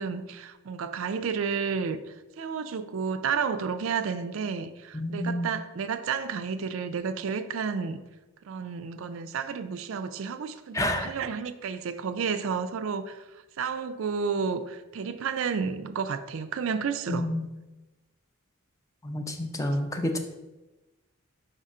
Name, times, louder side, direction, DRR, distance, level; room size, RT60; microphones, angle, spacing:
voice 1, 0.0-2.0 2.4-8.0 8.5-13.2 13.6-17.3, right 6 dB, 65° right, 0.4 m, -31 dB
voice 2, 4.9-5.5 10.7-11.1 17.1-17.5 19.0-20.2, left 1 dB, 15° left, 0.4 m, -29 dB
4.9 x 3.7 x 5.3 m
head